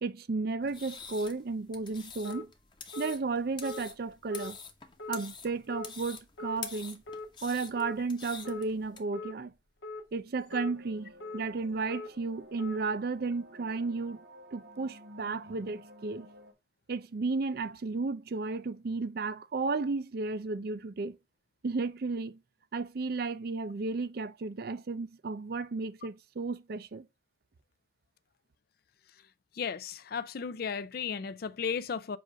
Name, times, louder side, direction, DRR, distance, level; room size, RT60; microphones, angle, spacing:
voice 1, 0.0-2.5 3.0-4.6 5.1-7.0 7.4-9.5 10.1-14.2 14.5-16.3 16.9-21.2 21.6-22.4 22.7-27.1, right 3 dB, 55° right, 0.5 m, -33 dB
sound 1, 0.6-9.0, left 5 dB, 25° left, 1.0 m, -46 dB
sound 2, 2.2-2.4 2.9-3.1 3.6-3.8 4.3-4.5 5.0-5.2 5.7-5.9 6.4-6.6 7.1-7.3 7.7-8.0 8.4-8.7 9.1-9.3 9.8-10.0 10.5-10.7 11.2-11.4 11.9-12.1 12.6-12.8, left 3 dB, 70° left, 1.0 m, -41 dB
sound 3, 10.5-16.5, equal, 90° right, 1.7 m, -53 dB
voice 2, 29.5-32.2, left 6 dB, 55° left, 0.4 m, -35 dB
7.6 x 2.6 x 5.0 m
head